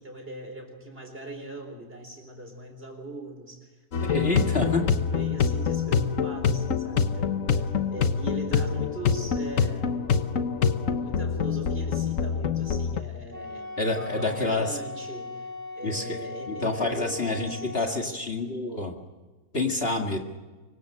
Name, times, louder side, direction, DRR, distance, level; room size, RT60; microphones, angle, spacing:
voice 1, 0.0-3.7 4.0-10.1 10.8-18.2, right 1 dB, 40° right, 5 dB, 4.4 m, -40 dB
sound 1, 3.9-13.0, left 6 dB, 60° left, 1.4 m, -26 dB
voice 2, 4.1-4.8 13.8-14.8 15.8-19.0 19.5-20.2, left 2 dB, 40° left, 2 dB, 2.2 m, -28 dB
Wind instrument woodwind instrument, 13.3-18.2, left 3 dB, 10° right, 5.8 m, -39 dB
25.5 x 23.5 x 6.5 m, 1.3 s
omnidirectional pair, 1.6 m